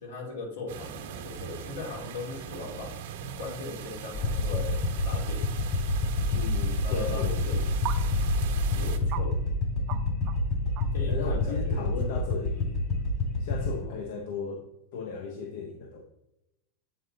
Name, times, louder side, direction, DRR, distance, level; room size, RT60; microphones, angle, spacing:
voice 1, 0.0-2.9 3.4-5.6 6.8-7.7 8.8-9.3 10.9-12.2 13.8-14.0, left 3 dB, 90° left, -2 dB, 2.6 m, -39 dB
sound 1, 0.7-9.0, right 8 dB, 75° right, 1.1 m, -41 dB
sound 2, 4.1-13.8, left 2 dB, 45° left, 2.1 m, -28 dB
sound 3, 5.7-5.8 7.9-8.0 8.5-8.6 9.1-9.3 9.9-10.0 10.3-10.4 10.8-11.0, right 13 dB, 50° right, 0.7 m, -35 dB
voice 2, 6.3-7.6 11.1-12.8 13.4-14.7 14.9-16.0, left 5 dB, 70° left, 3 dB, 0.8 m, -36 dB
8.2 x 3.9 x 4.0 m, 0.87 s
hypercardioid pair, 115°, 0 cm